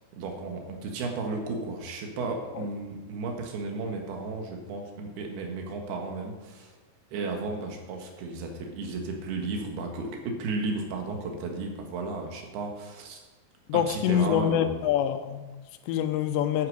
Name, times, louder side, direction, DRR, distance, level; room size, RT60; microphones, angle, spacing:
voice 1, 0.1-6.7 7.1-13.2 13.7-14.8, right 3 dB, 70° right, 2 dB, 3.6 m, -34 dB
voice 2, 13.7-16.7, left 10 dB, 90° left, 8 dB, 3.0 m, -26 dB
9.9 x 8.7 x 8.0 m, 1.2 s
omnidirectional pair, 4.9 m